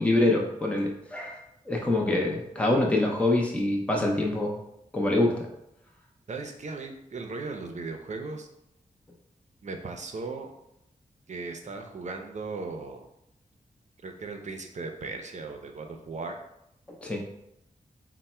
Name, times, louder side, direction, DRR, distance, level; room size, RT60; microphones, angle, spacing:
voice 1, 0.0-1.4 1.7-4.6 4.9-5.5 17.0-17.2, left 2 dB, 10° left, -1 dB, 0.6 m, -25 dB
voice 2, 6.3-8.5 9.6-10.5 11.3-13.1 14.0-16.4, right 3 dB, 55° right, 4 dB, 0.5 m, -37 dB
3.3 x 2.1 x 4.2 m, 0.81 s
wide cardioid pair, 95°, 15 cm